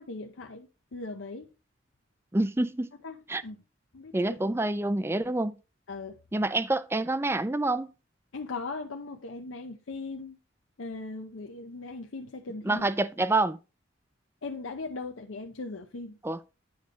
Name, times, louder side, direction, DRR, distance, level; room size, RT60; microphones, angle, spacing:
voice 1, 0.0-1.5 3.0-3.2 3.4-3.6 3.9-4.5 5.9-6.2 8.3-10.4 10.8-12.9 14.4-16.2, left 3 dB, 85° left, 0.7 m, -39 dB
voice 2, 2.3-2.9 3.3-3.4 4.1-5.6 6.3-7.9 12.6-13.6 16.2-16.4, right 2 dB, 10° right, 0.4 m, -27 dB
9.5 x 5.1 x 4.0 m
head